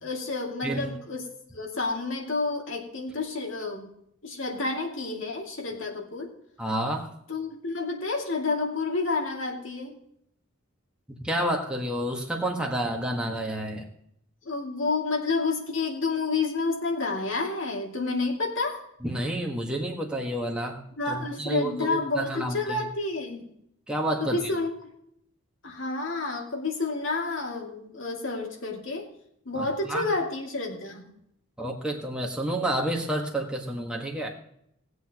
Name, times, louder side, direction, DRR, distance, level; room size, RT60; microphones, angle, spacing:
voice 1, 0.0-1.3 1.5-3.9 4.2-6.3 7.3-9.9 14.4-18.8 21.0-23.5 24.2-24.9 25.6-29.1 29.5-31.1, left 3 dB, 65° left, 0 dB, 2.4 m, -30 dB
voice 2, 6.6-7.1 11.1-13.9 19.0-22.8 23.9-24.4 29.5-30.1 31.6-34.3, right 1 dB, 5° right, -1 dB, 1.5 m, -30 dB
19.0 x 8.0 x 3.0 m, 0.72 s
head